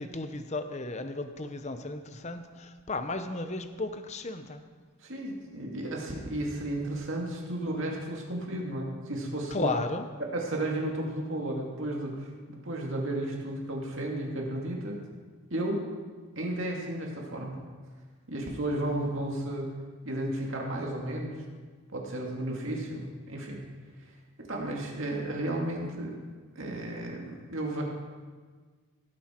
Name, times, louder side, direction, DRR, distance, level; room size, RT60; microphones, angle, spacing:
voice 1, 0.0-4.6 9.5-10.1, left 2 dB, 30° left, 8 dB, 0.7 m, -34 dB
voice 2, 5.0-9.7 10.3-15.0 15.5-15.8 16.4-17.6 18.3-19.7 20.0-21.4 21.9-23.6 24.4-26.1 26.6-27.8, right 1 dB, 60° right, -1 dB, 2.3 m, -33 dB
17.5 x 8.9 x 4.4 m, 1.5 s
head